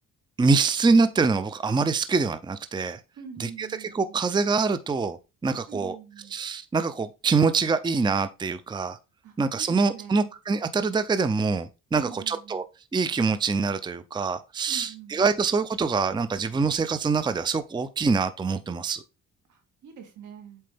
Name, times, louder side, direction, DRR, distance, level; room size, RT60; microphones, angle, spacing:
voice 1, 0.4-3.0 3.4-6.0 6.3-9.0 9.4-12.6 12.9-19.0, right 4 dB, 15° right, 0.5 m, -25 dB
voice 2, 3.2-4.2 5.7-6.3 9.2-10.3 11.9-12.6 14.7-15.3 19.5-20.6, right 7 dB, 80° right, 2.3 m, -44 dB
7.6 x 4.3 x 3.5 m
cardioid pair, 90°, 30 cm